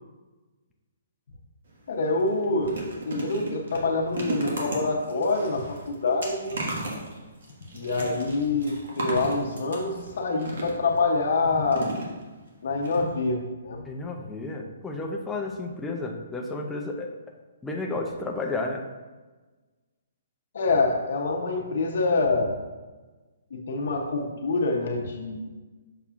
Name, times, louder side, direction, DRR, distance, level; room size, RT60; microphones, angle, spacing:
sound 1, 1.7-1.8 2.2-11.0 11.7-12.5 12.8-13.0 13.2-13.3, right 1 dB, 60° right, 1.5 m, -35 dB
voice 1, 1.9-6.6 7.7-11.9 12.6-13.8 20.5-22.5 23.5-25.4, left 3 dB, 50° left, 0 dB, 0.7 m, -26 dB
voice 2, 13.9-17.1 17.6-18.9, left 2 dB, 5° left, 0 dB, 0.4 m, -32 dB
6.9 x 5.8 x 2.4 m, 1.3 s
hypercardioid pair, 175°, 0 cm